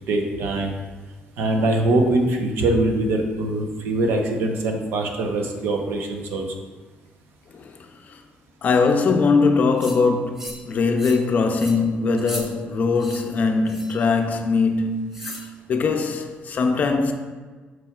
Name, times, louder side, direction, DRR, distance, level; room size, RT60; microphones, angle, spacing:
voice 1, 0.1-0.7 1.4-6.4, right 2 dB, 90° right, 0.9 m, -22 dB
voice 2, 8.6-17.1, left 4 dB, 45° left, 0.5 m, -21 dB
sound 1, 9.8-10.0 10.4-10.7 11.0-11.2 11.5-11.8 12.2-12.4 13.0-13.2 13.7-14.0 15.1-15.5, left 1 dB, 10° right, 0.9 m, -36 dB
7.3 x 6.1 x 2.4 m
cardioid pair, 145°, 4 cm